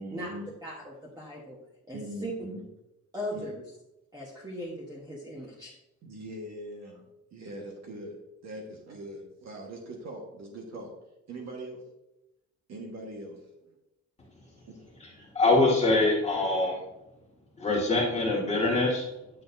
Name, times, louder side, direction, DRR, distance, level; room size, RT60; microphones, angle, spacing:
voice 1, 0.0-0.5 1.9-2.6 3.3-3.5 6.0-7.0 7.3-8.2 8.4-10.9 11.3-11.8 12.7-13.4, right 1 dB, 60° right, 0 dB, 1.5 m, -41 dB
voice 2, 0.6-1.6 1.9-2.3 3.1-3.7 4.1-5.7, equal, 10° right, -4 dB, 1.2 m, -38 dB
voice 3, 15.0-16.8 17.6-19.1, left 2 dB, 20° left, -4 dB, 1.9 m, -24 dB
9.8 x 6.3 x 2.6 m, 0.90 s
cardioid pair, 170°, 31 cm